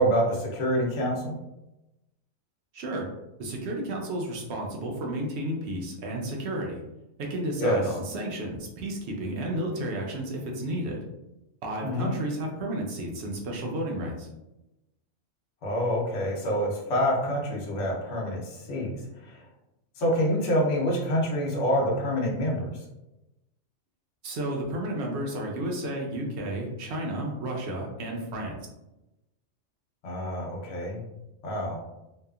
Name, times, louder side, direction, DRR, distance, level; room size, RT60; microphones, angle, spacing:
voice 1, 0.0-1.4 7.6-7.8 11.8-12.1 15.6-18.9 19.2-19.4 20.0-22.8 30.0-31.0 31.4-31.8, equal, 75° left, -2 dB, 1.0 m, -26 dB
voice 2, 2.7-3.1 3.4-6.8 7.2-11.0 11.6-14.3 24.2-28.6, right 1 dB, 70° right, 0 dB, 0.8 m, -32 dB
2.7 x 2.3 x 2.3 m, 0.95 s
omnidirectional pair, 1.3 m